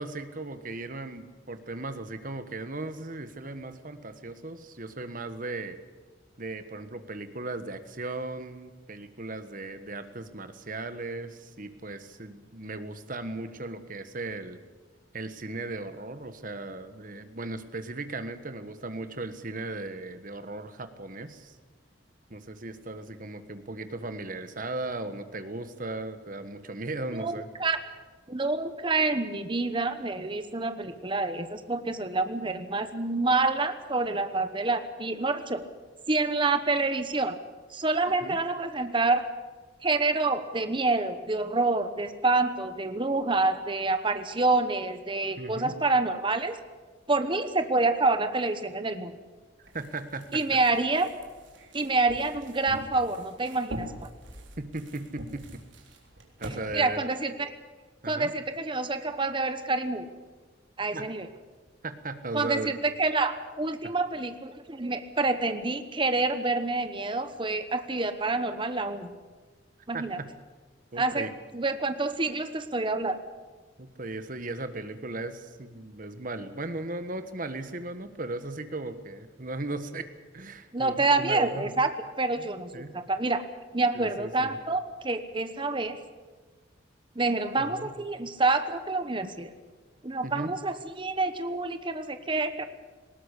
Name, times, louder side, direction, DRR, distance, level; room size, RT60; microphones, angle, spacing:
voice 1, 0.0-5.8 6.4-14.6 15.1-21.5 22.3-27.5 38.2-38.4 45.4-45.7 49.6-50.4 54.6-55.6 56.4-57.2 58.0-58.3 60.9-61.1 61.8-62.7 69.9-70.3 70.9-71.3 73.8-80.1 80.3-81.8 82.4-82.9 83.9-84.6 87.6-87.9 90.2-90.5, right 2 dB, 45° right, 10 dB, 1.5 m, -37 dB
voice 2, 28.3-35.7 36.1-37.4 37.7-39.2 39.8-46.6 47.1-49.1 50.3-51.1 51.7-54.1 56.5-57.5 58.0-60.1 60.8-61.3 62.3-69.1 69.9-70.2 71.0-71.3 71.5-73.2 80.7-83.4 83.7-86.0 87.1-89.5 90.0-92.6, right 3 dB, 25° right, 9 dB, 1.1 m, -27 dB
sound 1, 49.6-56.6, right 1 dB, 80° right, 3.6 m, -44 dB
19.5 x 18.0 x 8.4 m, 1.4 s
head